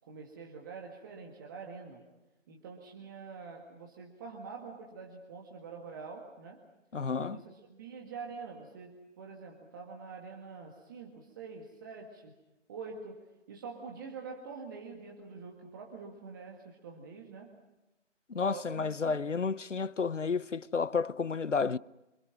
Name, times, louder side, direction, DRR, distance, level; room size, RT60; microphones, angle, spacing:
voice 1, 0.1-2.0 2.5-6.6 7.2-12.3 12.7-13.2 13.5-17.5 18.5-19.2, right 5 dB, 15° right, 1.9 m, -46 dB
voice 2, 6.9-7.4 18.3-21.8, left 5 dB, 75° left, 0.9 m, -31 dB
28.5 x 25.5 x 6.0 m
figure-of-eight pair, 155°, 37 cm